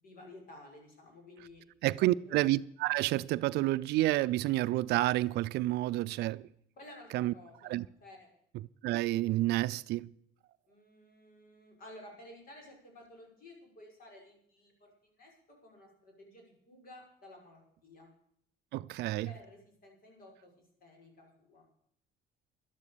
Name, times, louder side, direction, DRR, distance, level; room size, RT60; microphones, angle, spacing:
voice 1, 0.0-1.6 2.1-2.4 6.8-8.3 10.7-18.1 19.2-20.5 20.8-21.6, left 1 dB, 60° left, 5.8 m, -54 dB
voice 2, 1.8-6.5 7.1-7.3 7.7-7.9 8.8-10.1 18.7-19.3, right 17 dB, 80° right, 0.5 m, -29 dB
12.0 x 11.0 x 6.8 m
cardioid pair, 110°, 17 cm